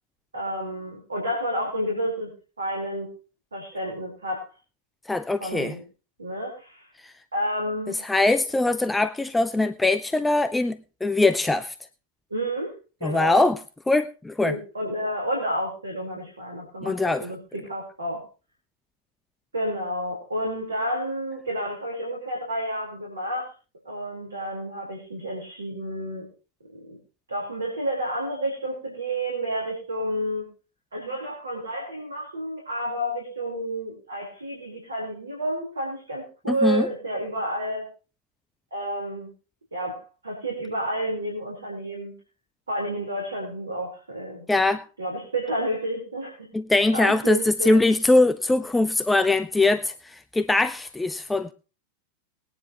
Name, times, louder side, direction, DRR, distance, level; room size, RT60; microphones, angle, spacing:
voice 1, 0.3-2.3 2.6-3.1 3.5-4.5 5.4-5.8 6.2-6.9 7.3-8.0 12.3-12.7 13.0-13.5 14.4-18.2 19.5-23.5 23.8-26.3 26.8-27.0 27.3-30.5 30.9-37.9 38.7-39.3 39.7-42.1 42.7-44.5 45.0-46.5 46.9-47.8, equal, 75° right, 4.0 m, -30 dB
voice 2, 5.1-5.8 7.0-7.1 7.9-11.7 13.0-13.6 13.9-14.6 16.8-17.3 36.5-36.9 44.5-44.9 46.5-51.5, left 2 dB, 10° left, 0.5 m, -22 dB
20.5 x 9.5 x 3.0 m
figure-of-eight pair, 90°, 0 cm